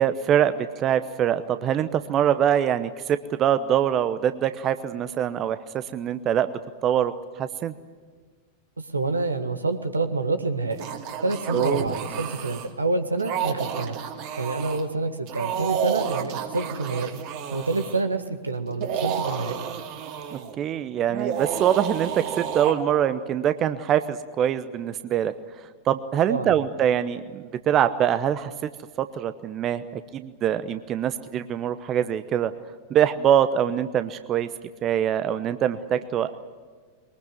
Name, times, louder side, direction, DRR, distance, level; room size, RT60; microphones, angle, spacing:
voice 1, 0.0-7.7 11.5-11.9 20.3-25.3 25.9-28.7 29.0-32.5 32.9-34.5 34.8-36.3, right 9 dB, 30° right, 12 dB, 0.9 m, -24 dB
voice 2, 8.8-10.9 11.2-14.0 14.4-17.2 17.5-19.6 26.3-26.6, right 3 dB, 80° right, 8 dB, 1.8 m, -27 dB
sound 1, 10.7-12.7 13.2-14.8 15.3-18.0 18.7-20.5 21.1-22.7, right 8 dB, 45° right, 2.7 m, -31 dB
22.5 x 20.5 x 9.3 m, 1.5 s
figure-of-eight pair, 90°, 0 cm